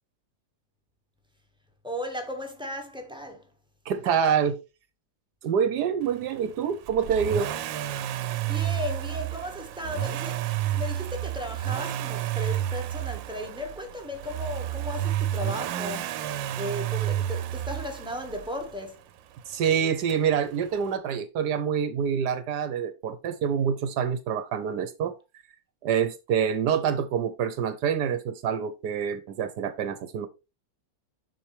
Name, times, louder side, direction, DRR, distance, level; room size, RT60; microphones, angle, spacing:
voice 1, 1.8-3.5 8.4-19.0, left 1 dB, 5° right, 1.2 m, -36 dB
voice 2, 3.9-4.6 5.4-7.5 19.5-25.1 25.8-30.3, right 7 dB, 70° right, 1.3 m, -26 dB
Accelerating revving vroom, 6.9-18.8 20.1-20.2, right 12 dB, 90° right, 1.3 m, -31 dB
7.3 x 6.1 x 3.2 m
omnidirectional pair, 2.0 m